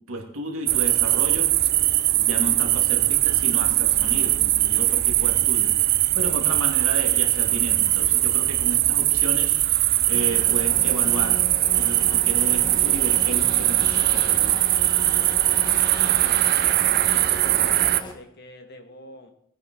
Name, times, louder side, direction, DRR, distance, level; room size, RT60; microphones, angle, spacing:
voice 1, 0.1-1.5 2.1-11.4 11.7-14.6, right 1 dB, 80° right, 2 dB, 2.8 m, -33 dB
sound 1, 0.7-18.0, right 15 dB, 50° right, 0.5 m, -21 dB
sound 2, 10.1-18.1, left 1 dB, 20° left, 1.5 m, -37 dB
voice 2, 15.1-15.7 16.0-16.6 17.0-19.3, left 2 dB, 50° left, 5 dB, 1.8 m, -47 dB
19.5 x 9.4 x 3.9 m, 0.72 s
head